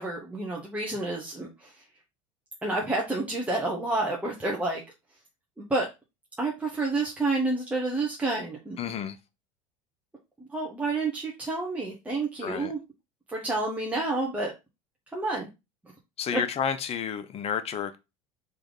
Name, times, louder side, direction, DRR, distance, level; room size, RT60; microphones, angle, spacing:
voice 1, 0.0-1.7 2.6-4.8 5.6-5.9 6.4-9.0 10.5-12.8 13.3-14.5 15.1-15.5 16.3-16.4, right 2 dB, 10° right, 1.1 m, -29 dB
voice 2, 8.8-9.2 12.4-12.7 16.2-18.0, left 8 dB, 35° left, 0.6 m, -30 dB
3.4 x 3.1 x 3.9 m
hypercardioid pair, 80°, 18 cm